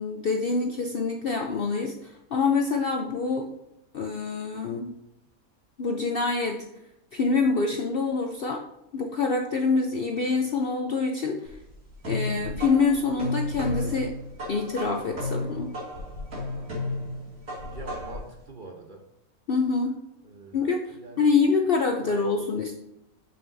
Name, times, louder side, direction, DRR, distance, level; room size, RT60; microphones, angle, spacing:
voice 1, 0.0-3.5 3.9-4.9 5.8-6.6 7.1-8.6 8.9-11.6 12.1-14.1 14.5-15.7 19.5-20.0 20.5-22.8, left 4 dB, 55° left, 3 dB, 0.6 m, -26 dB
sound 1, 11.4-18.3, left 2 dB, 70° right, 3.1 m, -33 dB
voice 2, 17.6-19.0 20.2-20.6 20.9-21.3 22.0-22.1, right 3 dB, 40° right, 2 dB, 0.9 m, -43 dB
6.9 x 6.5 x 2.7 m, 0.88 s
omnidirectional pair, 1.5 m